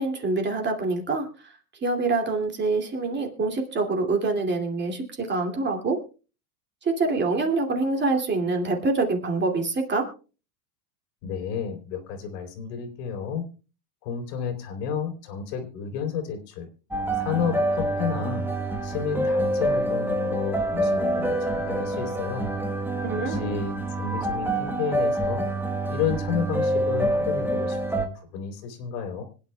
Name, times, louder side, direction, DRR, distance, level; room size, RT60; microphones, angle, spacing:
voice 1, 0.0-1.5 1.8-6.0 6.8-10.1 23.0-23.5, right 3 dB, 20° right, 2 dB, 2.5 m, -25 dB
voice 2, 11.2-13.4 14.0-16.7 17.2-18.5 18.8-22.5 23.2-25.5 25.9-29.2, left 7 dB, 75° left, 4 dB, 3.7 m, -31 dB
sound 1, 16.9-28.1, right 1 dB, 5° right, 1.1 m, -26 dB
25.5 x 9.7 x 2.3 m, 0.35 s
supercardioid pair, 140°, 50 cm